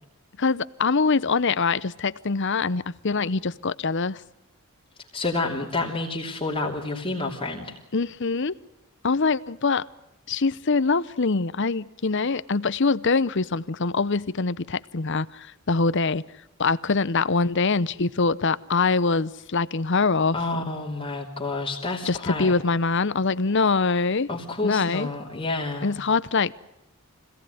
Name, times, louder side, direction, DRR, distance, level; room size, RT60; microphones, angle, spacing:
voice 1, 0.4-4.2 7.9-8.5 9.0-9.9 10.3-16.2 16.6-20.4 22.0-24.3 24.6-25.1 25.8-26.5, left 4 dB, 55° left, 17 dB, 0.8 m, -24 dB
voice 2, 5.1-7.8 20.3-22.5 24.3-25.9, left 2 dB, 25° left, -2 dB, 3.0 m, -29 dB
25.5 x 17.5 x 9.3 m, 0.92 s
head